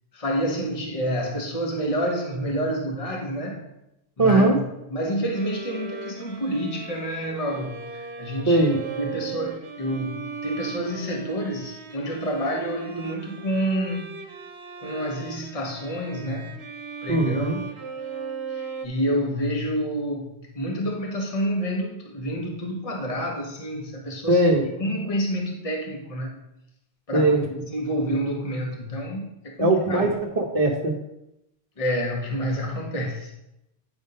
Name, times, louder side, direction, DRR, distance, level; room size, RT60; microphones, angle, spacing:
voice 1, 0.1-3.6 4.2-4.6 4.9-14.1 14.8-16.6 17.0-17.6 18.5-24.4 24.8-26.3 27.1-30.1 31.8-33.3, equal, 35° left, 0 dB, 1.3 m, -28 dB
voice 2, 4.2-4.6 8.5-8.8 17.1-17.6 24.3-24.7 27.1-27.4 29.6-30.9, right 2 dB, 40° right, -3 dB, 0.9 m, -20 dB
Bowed string instrument, 5.3-18.9, right 5 dB, 90° right, 1.1 m, -38 dB
9.0 x 3.5 x 5.4 m, 0.86 s
omnidirectional pair, 1.1 m